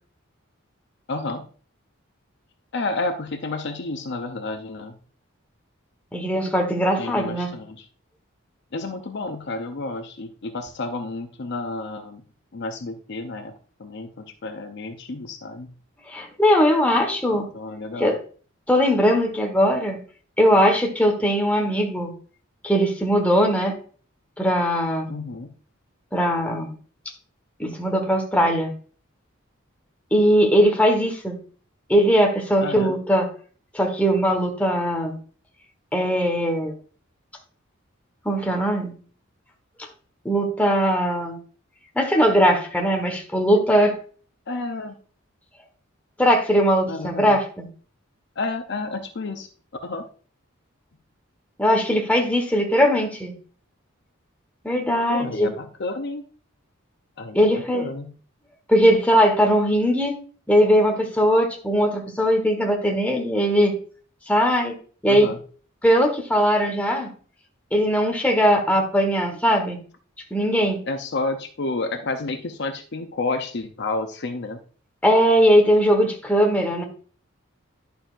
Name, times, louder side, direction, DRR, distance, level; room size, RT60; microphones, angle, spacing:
voice 1, 1.1-1.4 2.7-5.0 7.0-7.8 8.7-12.2 12.5-13.5 13.8-15.7 17.3-18.1 25.1-25.5 32.6-32.9 44.5-44.9 46.9-47.4 48.4-49.5 49.8-50.1 55.1-56.2 57.2-58.1 65.1-65.4 70.9-74.6, left 3 dB, 55° left, 7 dB, 0.7 m, -30 dB
voice 2, 6.1-7.5 16.1-17.5 18.0-18.2 18.7-20.0 20.4-22.1 22.6-23.7 24.4-25.1 26.1-26.7 27.6-28.7 30.1-31.4 31.9-33.3 33.7-35.2 35.9-36.7 38.2-38.9 40.2-41.4 41.9-44.0 46.2-47.7 51.6-53.3 54.6-55.5 57.3-57.9 58.7-60.2 60.5-63.7 64.3-64.7 65.0-65.3 65.8-67.1 67.7-69.8 70.3-70.8 75.0-76.8, equal, 5° left, 2 dB, 1.4 m, -20 dB
10.5 x 6.8 x 2.5 m, 0.41 s
head